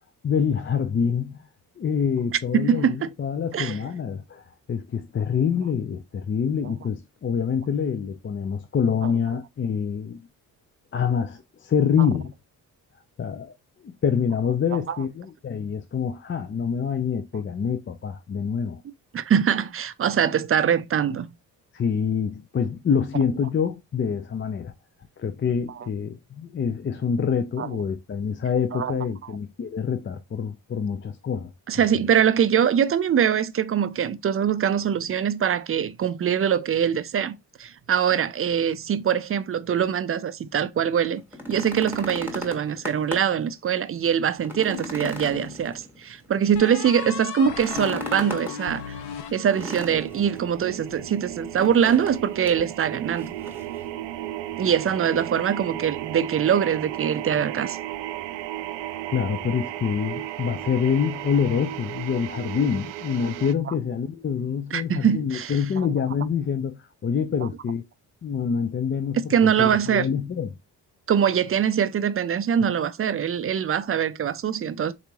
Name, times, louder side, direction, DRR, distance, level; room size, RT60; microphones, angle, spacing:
voice 1, 0.2-1.4 1.8-4.4 4.7-10.2 10.9-12.3 13.2-13.5 13.8-18.8 21.7-24.7 25.2-31.8 59.1-67.9 68.2-70.5, left 7 dB, 30° left, 0.5 m, -26 dB
voice 2, 2.5-3.1 3.5-3.8 14.9-15.0 19.1-21.3 27.6-27.7 28.7-29.0 31.7-41.2 41.5-48.9 49.3-53.3 54.6-57.8 64.7-65.6 69.3-70.1 71.1-74.9, right 8 dB, 35° right, 0.4 m, -23 dB
sound 1, 41.2-43.4 43.8-43.9 44.4-46.3 47.5-48.6 49.5-50.4 51.5-52.2 52.5-52.6 53.2-53.8 54.9-55.0, left 1 dB, 5° right, 1.6 m, -36 dB
sound 2, 44.7-45.6 46.5-50.0, left 8 dB, 65° left, 0.7 m, -36 dB
sound 3, 49.5-63.5, right 13 dB, 85° right, 0.5 m, -35 dB
4.0 x 3.0 x 2.3 m
supercardioid pair, 60°, 43 cm